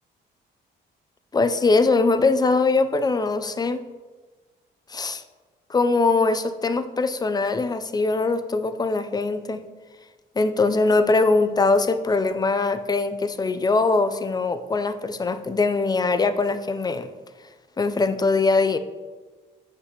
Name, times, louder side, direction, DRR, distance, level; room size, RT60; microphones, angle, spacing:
voice 1, 1.3-3.8 4.9-5.2 5.7-9.7 10.4-17.1 17.8-18.8, left 3 dB, 20° left, 11 dB, 0.4 m, -22 dB
8.2 x 5.4 x 2.9 m, 1.3 s
cardioid pair, 90°, 20 cm